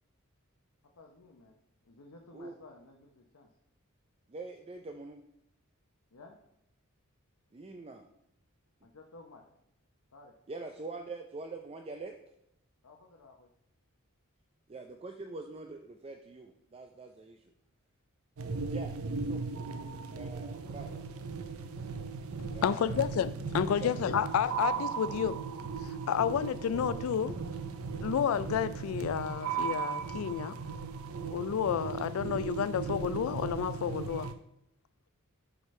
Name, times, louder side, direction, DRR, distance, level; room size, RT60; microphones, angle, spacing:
voice 1, 1.0-1.6 1.8-3.5 6.1-6.4 8.8-9.4 10.1-10.3 12.8-13.5, left 2 dB, 90° left, 0 dB, 0.8 m, -54 dB
voice 2, 4.3-5.2 7.5-8.0 10.5-12.2 14.7-17.4 18.7-19.0 19.2-19.4 20.1-21.0 22.5-23.1 23.8-24.0, right 3 dB, 25° right, 4 dB, 0.4 m, -44 dB
sound 1, 18.4-34.3, right 5 dB, 75° right, 0.5 m, -37 dB
voice 3, 22.4-25.4 25.8-27.3 28.0-30.5 31.3-34.3, left 8 dB, 70° left, 14 dB, 0.3 m, -31 dB
12.0 x 5.0 x 3.2 m, 0.78 s
head